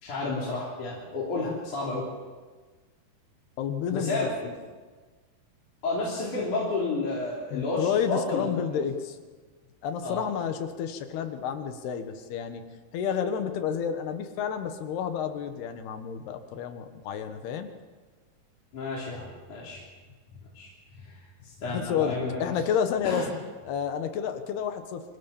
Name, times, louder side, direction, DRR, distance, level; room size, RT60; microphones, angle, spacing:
voice 1, 0.0-2.1 3.9-4.5 5.8-8.8 10.0-10.2 18.7-19.8 20.5-21.2 21.4-22.5 23.0-23.3, left 3 dB, 55° left, -5 dB, 4.8 m, -31 dB
voice 2, 3.6-4.3 7.5-9.2 9.8-12.6 12.9-17.7 21.7-23.3 23.7-25.0, left 8 dB, 90° left, 7 dB, 3.5 m, -30 dB
25.0 x 18.0 x 7.3 m, 1.4 s
omnidirectional pair, 4.5 m